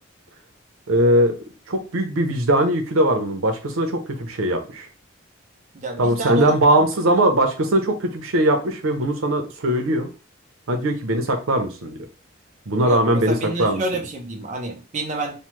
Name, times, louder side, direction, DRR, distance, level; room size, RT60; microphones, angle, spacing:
voice 1, 0.9-1.4 1.7-4.9 6.0-10.1 10.7-12.0 12.7-13.8, right 1 dB, 85° right, 4 dB, 0.7 m, -20 dB
voice 2, 5.7-6.8 12.8-15.4, right 2 dB, 35° right, 1 dB, 0.5 m, -29 dB
3.2 x 2.1 x 3.0 m, 0.34 s
head